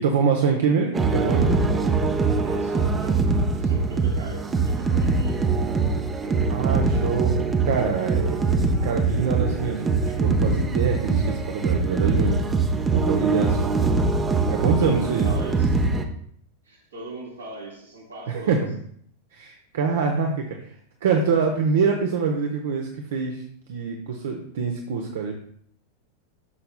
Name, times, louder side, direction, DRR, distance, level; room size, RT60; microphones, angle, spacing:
voice 1, 0.0-1.6 6.5-12.4 12.9-13.7 14.5-15.3 18.5-18.6 19.3-20.7 21.0-23.4 23.7-25.3, right 5 dB, 60° right, 3 dB, 1.0 m, -25 dB
sound 1, 0.9-16.0, right 4 dB, 20° right, 0.8 m, -23 dB
voice 2, 2.4-5.5 14.8-15.8 16.6-18.6, right 2 dB, 80° right, -3 dB, 3.1 m, -39 dB
12.5 x 6.7 x 2.2 m, 0.62 s
figure-of-eight pair, 90°, 0 cm